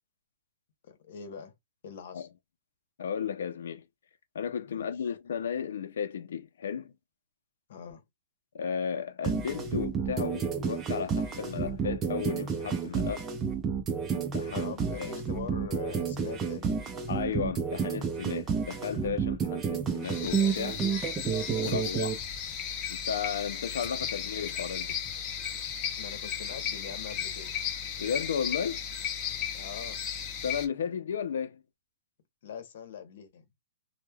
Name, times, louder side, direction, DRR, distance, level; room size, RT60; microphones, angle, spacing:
voice 1, 0.8-1.5 1.8-2.3 4.7-4.9 7.7-8.0 14.5-16.9 21.6-21.8 26.0-27.5 29.5-30.0 32.4-33.5, left 7 dB, 60° left, 0.9 m, -43 dB
voice 2, 3.0-3.8 4.3-6.9 8.5-13.3 14.1-15.1 17.1-20.9 21.6-22.2 22.9-25.0 28.0-28.9 30.4-31.6, left 7 dB, 75° left, 0.4 m, -34 dB
sound 1, 9.2-22.2, right 6 dB, 20° right, 0.5 m, -30 dB
sound 2, 20.0-30.7, left 8 dB, 30° left, 0.7 m, -35 dB
3.1 x 2.1 x 2.2 m
hypercardioid pair, 155°, 0 cm